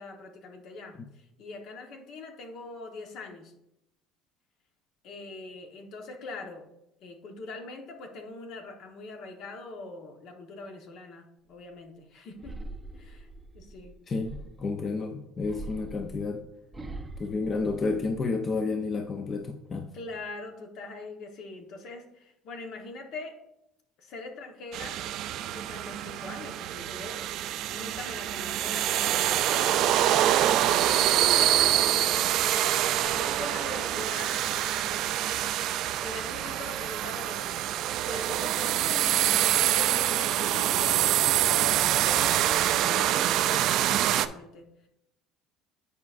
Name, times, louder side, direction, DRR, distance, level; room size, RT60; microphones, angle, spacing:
voice 1, 0.0-3.5 5.0-6.7 7.0-12.6 12.9-13.3 13.5-13.9 19.9-23.4 24.0-25.0 25.5-27.3 27.7-29.9 30.6-35.0 36.0-37.7 38.0-41.3 41.9-44.7, left 3 dB, 60° left, 3 dB, 1.1 m, -42 dB
sound 1, 12.4-14.8 15.4-18.5 18.9-19.4, right 2 dB, 15° right, 0.6 m, -43 dB
voice 2, 14.1-16.4 17.2-19.9, left 3 dB, 35° left, 5 dB, 0.6 m, -31 dB
sound 2, 24.7-44.3, right 12 dB, 60° right, 0.3 m, -25 dB
9.5 x 4.7 x 2.5 m, 0.84 s
cardioid pair, 115°, 0 cm